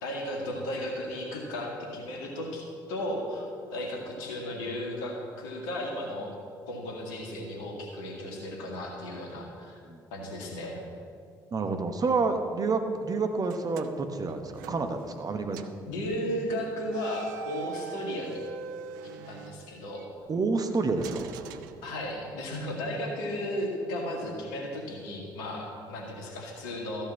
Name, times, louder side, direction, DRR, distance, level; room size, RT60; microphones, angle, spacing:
voice 1, 0.0-6.4 6.7-9.8 10.1-10.8 15.9-18.4 19.0-20.1 21.8-27.0, left 1 dB, 70° left, 0 dB, 2.0 m, -35 dB
voice 2, 11.5-15.6 20.3-21.3, right 4 dB, 35° right, 7 dB, 1.0 m, -29 dB
sound 1, 13.4-15.3 15.5-15.9 16.9-20.1 21.0-22.4, right 6 dB, 70° right, 0.5 m, -43 dB
14.0 x 5.5 x 7.0 m, 2.3 s
figure-of-eight pair, 45°, 11 cm